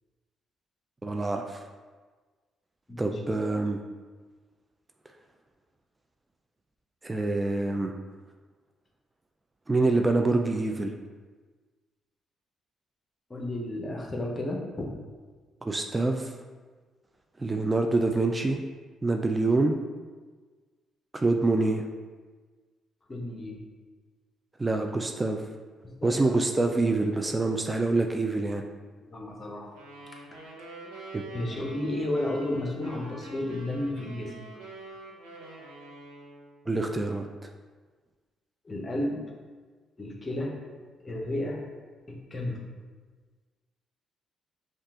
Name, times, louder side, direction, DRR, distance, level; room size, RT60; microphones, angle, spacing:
voice 1, 1.0-1.6 3.0-3.8 7.0-7.9 9.7-10.9 15.6-16.3 17.4-18.6 19.0-19.8 21.1-21.8 24.6-25.4 26.0-28.6 31.1-31.2 36.7-37.5, right 2 dB, 25° right, 4 dB, 0.4 m, -26 dB
voice 2, 2.9-3.2 13.3-14.9 23.1-23.6 25.8-26.4 29.0-29.7 31.3-34.3 38.6-39.2 40.0-40.6 41.0-41.6 42.1-42.7, left 1 dB, 35° left, 0 dB, 1.0 m, -32 dB
sound 1, 29.7-36.5, right 2 dB, 90° right, 1.0 m, -46 dB
5.3 x 2.4 x 3.6 m, 1.4 s
supercardioid pair, 55°, 0 cm